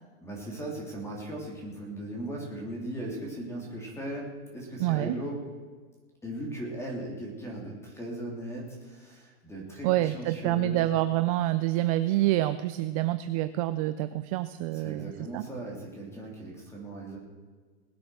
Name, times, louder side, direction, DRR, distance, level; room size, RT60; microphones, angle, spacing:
voice 1, 0.2-5.4 6.2-10.9 14.7-17.2, right 1 dB, 10° left, -2 dB, 3.1 m, -38 dB
voice 2, 4.8-5.2 9.8-15.4, right 15 dB, 35° right, 12 dB, 0.4 m, -27 dB
20.0 x 7.8 x 6.2 m, 1.4 s
supercardioid pair, 150°, 34 cm